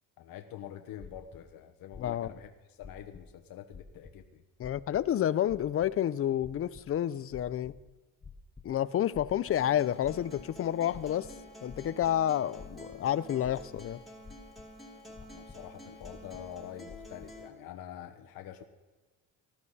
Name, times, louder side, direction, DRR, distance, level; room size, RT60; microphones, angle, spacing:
voice 1, 0.2-4.4 15.1-18.6, left 10 dB, 70° left, 5 dB, 1.1 m, -46 dB
sound 1, 1.0-1.4 1.9-2.4 2.8-3.3 3.7-4.1 4.6-5.0 5.5-5.9 6.4-6.9 7.3-7.8 8.2-8.7 9.1-9.7 10.0-10.5 10.9-12.1 12.6-13.0 13.4-14.0 14.2-14.7 15.1-15.6 16.0-16.5 16.9-17.3, left 5 dB, 15° left, 0.8 m, -50 dB
voice 2, 2.0-2.3 4.6-7.7 8.6-11.3 11.6-14.0, left 11 dB, 40° left, 17 dB, 0.5 m, -29 dB
Acoustic guitar, 9.5-17.5, left 1 dB, ahead, 2.4 m, -50 dB
19.5 x 13.5 x 4.1 m, 1.2 s
cardioid pair, 145°, 36 cm